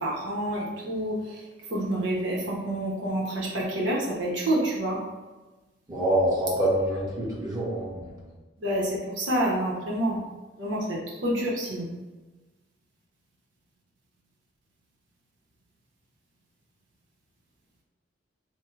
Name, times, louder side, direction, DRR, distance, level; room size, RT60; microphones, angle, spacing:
voice 1, 0.0-1.4 1.7-5.0 8.6-10.2 10.6-11.9, right 1 dB, 70° right, -4 dB, 0.9 m, -28 dB
voice 2, 5.9-8.1, right 1 dB, 20° right, -7 dB, 1.2 m, -26 dB
4.4 x 2.1 x 4.5 m, 1.2 s
head